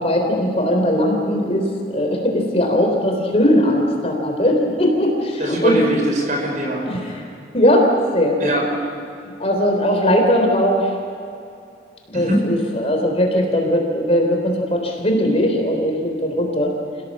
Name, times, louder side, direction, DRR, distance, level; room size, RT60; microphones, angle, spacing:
voice 1, 0.0-1.7 1.9-5.8 6.9-7.2 7.5-8.5 9.4-10.9 12.1-16.7, equal, 35° left, 1 dB, 3.7 m, -19 dB
voice 2, 5.4-7.1 8.4-8.6 12.1-12.5, equal, 45° right, 0 dB, 5.6 m, -22 dB
28.0 x 17.0 x 7.5 m, 2.6 s
head